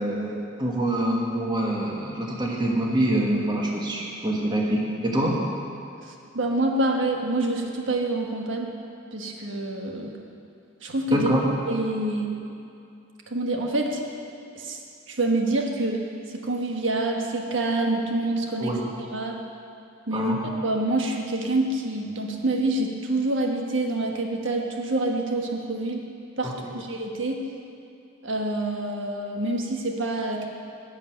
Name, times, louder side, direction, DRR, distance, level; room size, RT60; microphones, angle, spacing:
voice 1, 0.0-5.4 11.1-11.5 18.6-18.9 20.1-20.4 26.4-26.7, right 1 dB, 20° right, -2 dB, 1.5 m, -25 dB
voice 2, 6.0-8.7 9.1-10.1 10.8-11.3 11.7-12.3 13.3-14.0 14.5-14.8 15.1-16.0 16.3-18.8 19.1-19.4 20.1-20.3 20.6-26.0 26.4-27.4 28.2-30.5, right 2 dB, 75° right, 2 dB, 1.4 m, -26 dB
10.5 x 6.5 x 9.2 m, 2.6 s
head